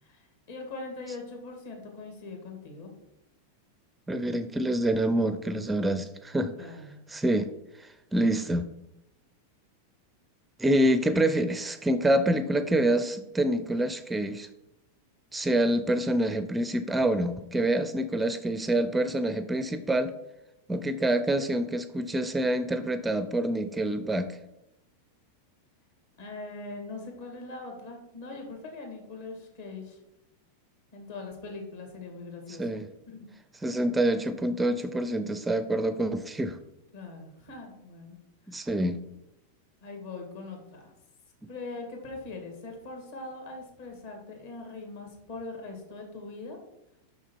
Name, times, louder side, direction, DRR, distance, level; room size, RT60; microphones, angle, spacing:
voice 1, 0.0-2.9 6.6-7.0 26.2-30.0 30.9-32.8 33.1-33.3 36.9-38.2 38.5-38.7 39.8-40.9 41.5-46.6, left 3 dB, 60° left, 2 dB, 2.2 m, -41 dB
voice 2, 4.1-6.5 7.1-7.5 7.8-8.7 10.6-14.5 15.3-20.1 20.7-24.4 32.6-32.9 33.6-36.6 38.5-39.0, right 1 dB, 10° right, 11 dB, 0.4 m, -26 dB
6.4 x 5.9 x 4.5 m, 0.88 s
figure-of-eight pair, 90°, 0 cm